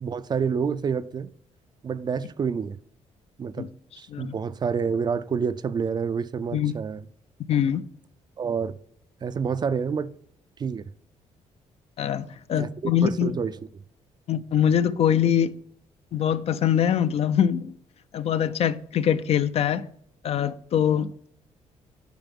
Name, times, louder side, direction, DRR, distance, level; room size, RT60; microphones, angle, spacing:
voice 1, 0.0-1.3 1.8-2.8 3.4-3.7 4.0-7.0 8.4-8.8 9.2-10.1 10.6-10.8 12.6-13.5, right 6 dB, 35° right, 0.4 m, -28 dB
voice 2, 7.5-7.8 12.0-13.3 14.3-15.5 16.1-17.7 18.1-19.9 20.2-21.1, left 9 dB, 55° left, 0.5 m, -23 dB
9.1 x 4.9 x 5.3 m
cardioid pair, 110°, 12 cm